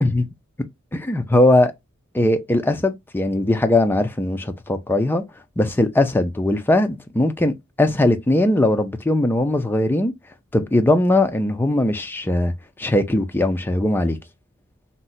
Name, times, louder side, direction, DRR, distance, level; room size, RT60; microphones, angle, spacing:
voice 1, 0.9-1.7 2.1-5.2 5.6-10.1 10.5-12.5 12.8-14.2, left 1 dB, 10° left, 0.3 m, -19 dB
2.7 x 2.1 x 3.8 m
head